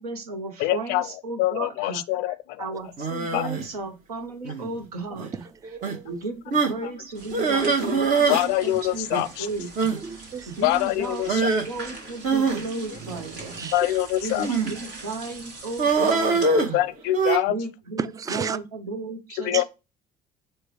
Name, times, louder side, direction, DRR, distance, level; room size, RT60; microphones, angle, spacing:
voice 1, 0.0-2.0 2.6-5.5 6.0-9.1 9.4-9.9 10.5-13.7 14.2-16.8 17.5-19.6, right 3 dB, 80° right, 0.8 m, -34 dB
voice 2, 0.6-2.7 3.3-3.5 6.8-6.9 8.1-9.5 10.6-11.5 12.9-13.0 13.7-14.6 16.5-17.6 19.4-19.6, left 15 dB, 60° left, 0.4 m, -25 dB
sound 1, 3.0-3.7 4.5-4.8 5.2-5.3 5.8-6.0 6.5-6.8 7.3-8.5 8.7-8.8 9.1-9.2 9.8-10.0 11.3-11.7 12.2-13.6 14.4-14.8 15.8-17.4, right 4 dB, 45° right, 1.0 m, -23 dB
voice 3, 5.3-6.2 7.4-7.5 9.9-10.5 13.6-13.8 18.0-18.6 19.5-19.6, right 6 dB, 20° right, 0.4 m, -33 dB
sound 2, 7.1-16.5, right 3 dB, 65° right, 1.4 m, -43 dB
4.4 x 2.2 x 4.7 m
figure-of-eight pair, 55°, 19 cm